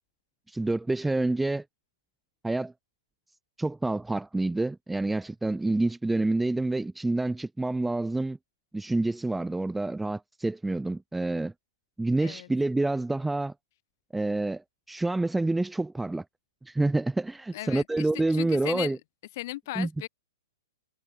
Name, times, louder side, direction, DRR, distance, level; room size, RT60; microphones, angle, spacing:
voice 1, 0.5-1.6 2.4-2.7 3.6-8.4 8.7-11.5 12.0-13.5 14.1-16.2 16.6-19.0 19.8-19.9, right 2 dB, 5° right, 0.9 m, -28 dB
voice 2, 12.2-12.5 17.5-19.0 19.4-20.1, left 17 dB, 45° left, 4.9 m, -37 dB
hypercardioid pair, 160°, 2 cm